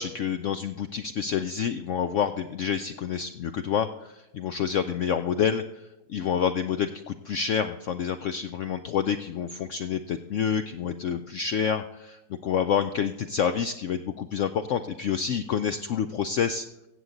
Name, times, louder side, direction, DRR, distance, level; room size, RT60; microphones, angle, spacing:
voice 1, 0.0-5.6 6.1-16.7, left 7 dB, 80° left, 9 dB, 0.6 m, -28 dB
16.0 x 7.7 x 3.8 m, 0.98 s
omnidirectional pair, 1.9 m